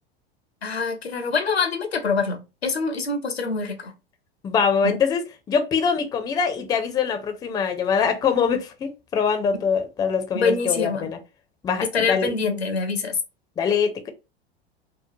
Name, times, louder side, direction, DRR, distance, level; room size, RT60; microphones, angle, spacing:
voice 1, 0.6-3.9 4.8-5.0 10.3-11.1 11.8-13.2, left 4 dB, 85° left, 0.6 m, -25 dB
voice 2, 4.4-5.2 5.5-11.2 11.6-12.3 13.6-14.1, left 6 dB, 10° left, 0.4 m, -23 dB
2.9 x 2.1 x 2.6 m
figure-of-eight pair, 85°, 31 cm